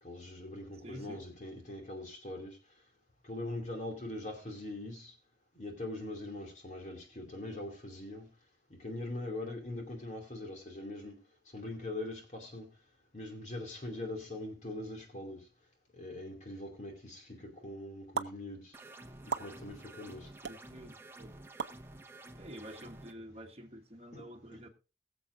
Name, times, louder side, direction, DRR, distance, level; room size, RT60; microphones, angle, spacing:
voice 1, 0.0-2.6 3.2-5.1 5.5-8.3 8.7-11.2 11.5-12.7 13.1-15.5 15.9-18.8 19.2-20.3 24.1-24.2 24.5-24.6, left 1 dB, 45° left, 2.6 m, -42 dB
voice 2, 0.8-1.2 20.4-21.3 22.4-24.7, right 1 dB, 35° right, 1.2 m, -48 dB
sound 1, 18.1-18.3 19.3-19.5 20.4-20.6 21.6-21.8, right 6 dB, 85° right, 0.7 m, -34 dB
sound 2, 18.7-23.1, right 2 dB, 15° right, 1.0 m, -51 dB
21.5 x 7.4 x 2.6 m
head